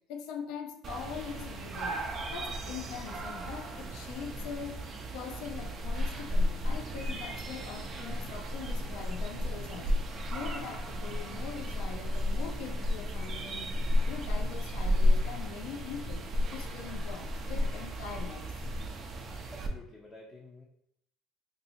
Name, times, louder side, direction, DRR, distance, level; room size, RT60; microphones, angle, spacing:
voice 1, 0.1-2.0 2.3-4.8 5.1-13.7 14.0-18.5, left 7 dB, 75° left, 0.6 m, -42 dB
sound 1, 0.8-19.7, left 1 dB, 40° right, 0.5 m, -33 dB
voice 2, 18.8-20.7, left 2 dB, 15° left, 0.6 m, -52 dB
2.7 x 2.7 x 4.1 m
supercardioid pair, 105°, 0 cm